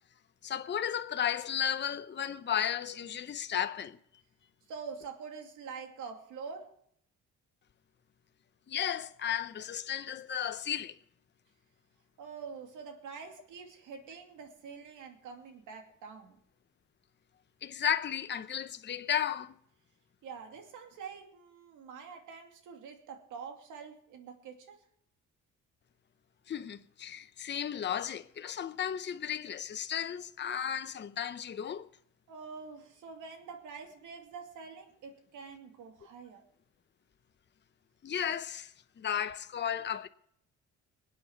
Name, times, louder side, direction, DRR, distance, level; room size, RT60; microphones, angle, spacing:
voice 1, 0.4-4.2 8.7-11.0 17.6-19.5 26.5-31.9 38.0-40.1, left 9 dB, 35° left, 0.8 m, -34 dB
voice 2, 4.7-6.8 12.2-16.4 20.2-24.8 32.3-36.5, right 5 dB, 85° right, 2.6 m, -46 dB
21.5 x 8.6 x 4.6 m
cardioid pair, 90°, 30 cm